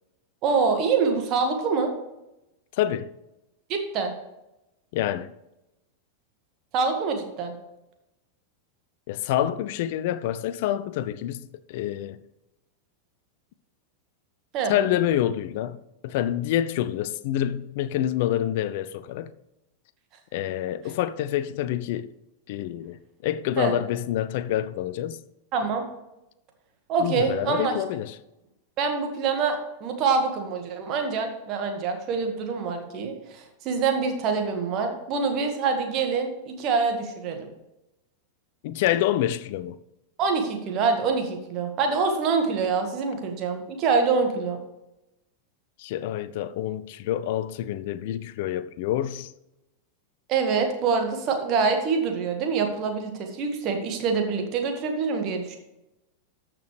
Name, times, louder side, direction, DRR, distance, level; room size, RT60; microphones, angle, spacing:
voice 1, 0.4-1.9 3.7-4.1 6.7-7.5 14.5-14.7 23.6-23.7 25.5-25.9 26.9-27.7 28.8-37.5 40.2-44.6 50.3-55.6, right 5 dB, 35° right, 1.8 m, -25 dB
voice 2, 2.7-3.1 4.9-5.3 9.1-12.2 14.7-19.3 20.3-22.1 22.5-25.2 27.0-28.2 38.6-39.8 45.8-49.3, left 12 dB, 50° left, 0.5 m, -27 dB
13.5 x 6.0 x 3.3 m
figure-of-eight pair, 90°, 0 cm